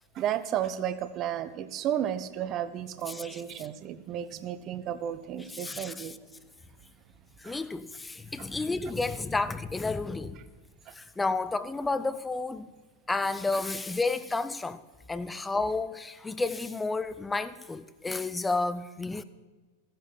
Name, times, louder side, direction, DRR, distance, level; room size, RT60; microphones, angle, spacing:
voice 1, 0.1-6.2 7.4-7.5 8.4-8.5 10.9-11.0, right 10 dB, 35° right, 0.6 m, -33 dB
voice 2, 3.1-3.7 5.5-6.2 7.4-10.4 10.9-12.7 13.1-14.8 15.1-19.2, left 3 dB, 10° left, 0.4 m, -31 dB
13.5 x 10.5 x 4.4 m
figure-of-eight pair, 90°, 0 cm